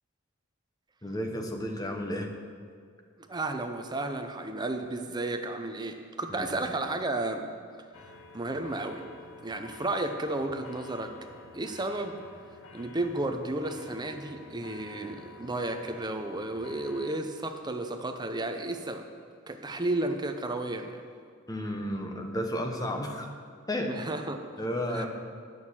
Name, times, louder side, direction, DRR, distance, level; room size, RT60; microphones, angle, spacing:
voice 1, 1.0-2.3 6.3-6.7 21.5-23.3 23.7-23.9 24.6-25.1, equal, 20° left, 3 dB, 1.0 m, -32 dB
voice 2, 3.2-7.5 8.3-9.1 9.4-11.1 11.5-12.2 12.7-19.1 19.5-21.0 23.9-24.4 24.9-25.1, right 2 dB, 20° right, 6 dB, 0.6 m, -33 dB
sound 1, 7.9-17.2, left 4 dB, 80° left, 0.8 m, -50 dB
11.0 x 6.3 x 7.2 m, 2.1 s
head